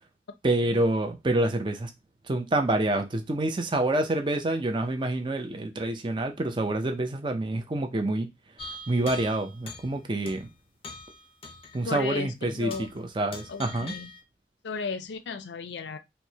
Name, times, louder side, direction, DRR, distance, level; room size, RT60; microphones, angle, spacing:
voice 1, 0.4-1.9 2.3-8.3 8.9-10.5 11.7-13.9, right 2 dB, 25° right, 0.4 m, -27 dB
sound 1, 8.6-10.0 10.3-10.5 10.8-11.9 12.2-12.3 12.7-13.0 13.3-14.2, left 2 dB, 30° left, 0.6 m, -42 dB
voice 2, 11.8-12.9 13.5-14.1 14.6-16.0, left 5 dB, 85° left, 0.4 m, -35 dB
4.4 x 2.1 x 2.7 m
head